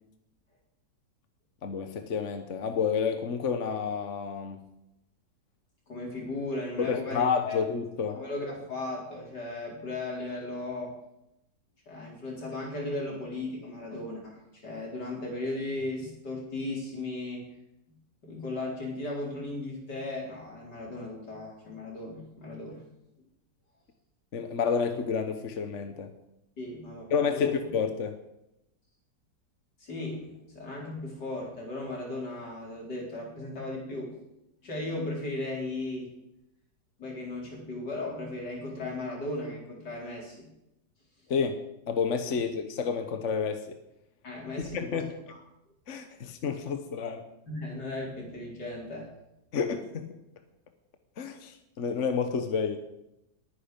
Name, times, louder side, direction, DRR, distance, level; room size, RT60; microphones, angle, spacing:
voice 1, 1.6-4.6 6.8-8.2 24.3-26.1 27.1-28.2 41.3-41.6 41.9-43.8 44.7-45.1 45.9-47.2 49.5-50.2 51.2-52.8, left 6 dB, 50° left, 8 dB, 1.3 m, -30 dB
voice 2, 5.9-7.6 8.0-10.9 11.9-17.4 18.2-22.8 26.6-27.7 29.8-34.1 34.6-36.1 37.0-40.5 44.2-45.4 46.2-46.3 47.5-49.1, left 2 dB, 75° left, -2 dB, 4.9 m, -36 dB
20.5 x 9.9 x 5.3 m, 0.87 s
omnidirectional pair, 1.9 m